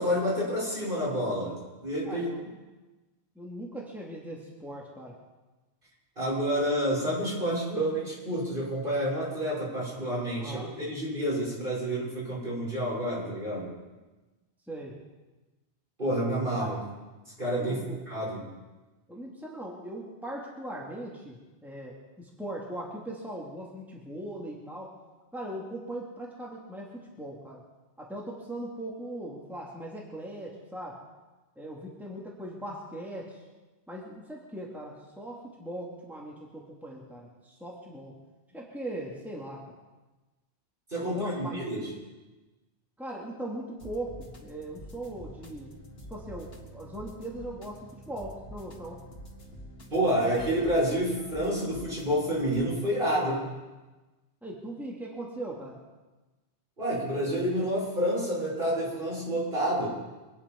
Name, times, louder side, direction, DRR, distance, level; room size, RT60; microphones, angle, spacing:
voice 1, 0.0-2.3 6.2-13.7 16.0-16.8 17.4-17.8 18.1-18.4 40.9-41.9 49.9-53.5 56.8-59.9, equal, 55° right, -6 dB, 6.5 m, -29 dB
voice 2, 2.0-2.4 3.4-5.1 10.4-10.7 14.7-14.9 16.6-16.8 17.6-18.1 19.1-24.9 25.3-27.6 28.0-31.0 31.6-33.4 33.9-38.1 38.5-39.6 41.0-41.6 43.0-45.7 46.1-49.0 53.1-53.4 54.4-55.8, right 1 dB, ahead, -4 dB, 2.6 m, -39 dB
sound 1, 43.8-52.6, equal, 70° left, 2.2 m, -47 dB
24.5 x 9.8 x 5.3 m, 1.2 s
omnidirectional pair, 1.1 m